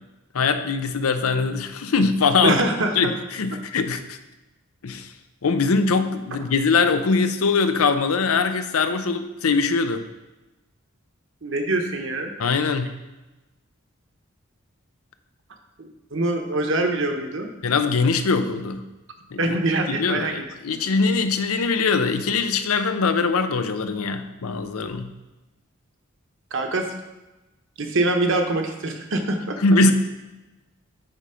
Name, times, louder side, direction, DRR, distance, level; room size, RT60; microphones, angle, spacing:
voice 1, 0.3-2.6 3.0-4.2 4.8-5.1 5.4-10.1 12.4-12.9 17.6-18.8 19.3-19.6 19.9-25.1 29.6-29.9, left 4 dB, 90° left, 9 dB, 0.6 m, -22 dB
voice 2, 2.4-3.1 11.4-12.3 15.8-17.5 19.4-20.5 20.9-21.0 26.5-26.9 27.8-29.6, right 2 dB, 60° right, 4 dB, 1.0 m, -24 dB
8.8 x 4.3 x 5.0 m, 1.1 s
head